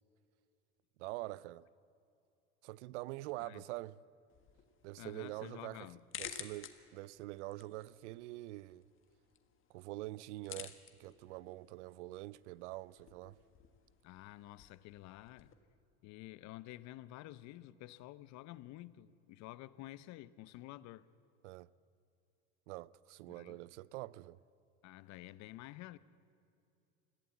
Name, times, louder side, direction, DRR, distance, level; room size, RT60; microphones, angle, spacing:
voice 1, 1.0-1.7 2.6-4.0 4.8-5.9 6.2-8.8 9.7-13.4 21.4-21.7 22.7-24.4, right 18 dB, 85° right, 0.6 m, -45 dB
sound 1, 4.3-15.5, left 9 dB, 35° left, 1.5 m, -54 dB
voice 2, 5.0-6.0 14.0-15.5 16.0-21.1 23.3-23.6 24.8-26.0, left 16 dB, 55° left, 0.8 m, -51 dB
21.0 x 15.0 x 8.4 m
supercardioid pair, 110°, 34 cm